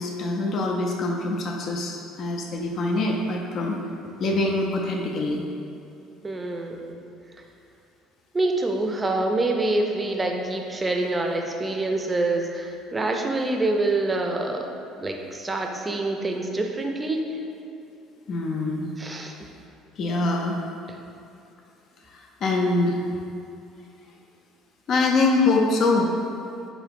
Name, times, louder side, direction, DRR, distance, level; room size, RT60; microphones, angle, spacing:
voice 1, 0.0-3.8 4.0-5.4 18.3-18.9 20.0-20.6 22.1-23.0 24.9-26.1, left 2 dB, 55° left, 0 dB, 0.4 m, -24 dB
voice 2, 6.2-7.0 8.3-14.7 15.0-17.2 19.0-19.3, right 2 dB, 25° right, 2 dB, 0.4 m, -26 dB
3.8 x 2.5 x 3.4 m, 2.6 s
hypercardioid pair, 65°, 0 cm